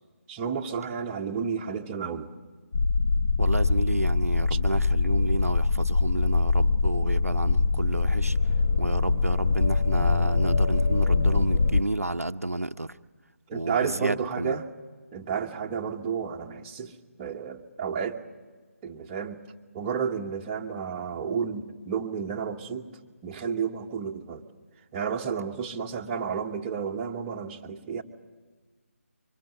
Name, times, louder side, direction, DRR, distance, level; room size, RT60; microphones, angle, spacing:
voice 1, 0.3-2.3 13.5-14.7 15.1-18.2 18.8-19.4 19.7-22.9 23.2-24.5 24.9-28.0, right 6 dB, 20° right, 1.1 m, -31 dB
sound 1, 2.7-11.8, left 4 dB, 50° left, 0.8 m, -23 dB
voice 2, 3.4-8.4 8.8-13.0 13.5-14.6, right 2 dB, 85° right, 0.7 m, -31 dB
24.5 x 22.5 x 7.7 m
figure-of-eight pair, 150°, 8 cm